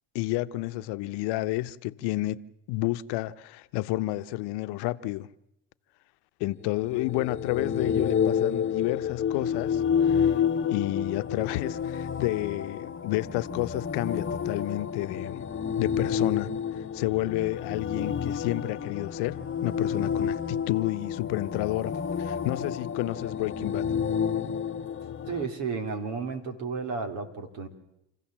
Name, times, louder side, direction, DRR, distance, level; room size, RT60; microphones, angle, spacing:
voice 1, 0.1-2.4 2.7-5.3 6.4-10.3 10.7-15.5 15.8-16.5 16.9-23.9, left 18 dB, 75° left, 0.9 m, -30 dB
sound 1, 6.7-25.5, left 7 dB, 30° left, 1.0 m, -29 dB
voice 2, 25.3-27.7, right 5 dB, 80° right, 3.0 m, -33 dB
28.5 x 15.5 x 7.4 m
supercardioid pair, 70°, 41 cm